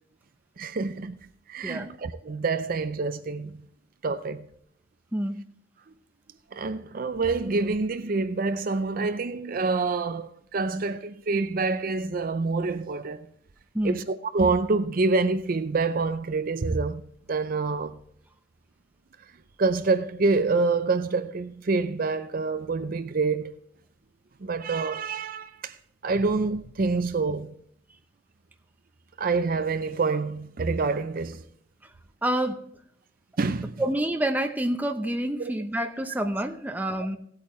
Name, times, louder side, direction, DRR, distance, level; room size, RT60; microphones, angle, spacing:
voice 1, 0.6-1.2 1.5-3.6 4.0-4.5 6.5-13.3 13.8-14.0 14.3-17.0 17.3-18.0 19.6-23.5 24.4-25.8 26.0-27.5 29.2-31.4 33.4-33.8, right 3 dB, 45° right, 0.5 m, -27 dB
voice 2, 5.1-5.4 13.7-14.0 31.8-31.9 32.2-32.7 33.8-37.2, right 1 dB, 10° right, 0.7 m, -28 dB
17.0 x 8.5 x 3.1 m
head